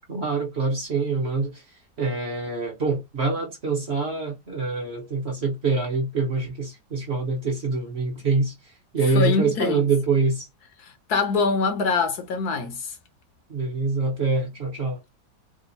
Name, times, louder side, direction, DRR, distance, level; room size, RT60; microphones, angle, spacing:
voice 1, 0.1-1.6 2.0-8.5 8.9-10.5 13.5-15.0, right 3 dB, 45° right, 1.0 m, -25 dB
voice 2, 9.1-9.8 10.8-13.0, left 4 dB, 65° left, 1.3 m, -24 dB
3.4 x 2.4 x 4.0 m
omnidirectional pair, 1.9 m